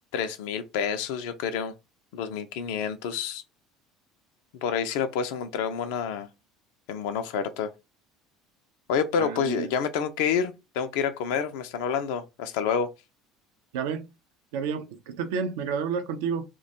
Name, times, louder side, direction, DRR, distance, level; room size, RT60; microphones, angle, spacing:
voice 1, 0.1-1.7 2.1-3.4 4.5-6.3 6.9-7.7 8.9-12.9, left 7 dB, 60° left, 0.3 m, -28 dB
voice 2, 9.2-9.7 13.7-14.1 14.5-16.4, right 6 dB, 65° right, 0.4 m, -30 dB
2.3 x 2.1 x 2.7 m
figure-of-eight pair, 65°, 0 cm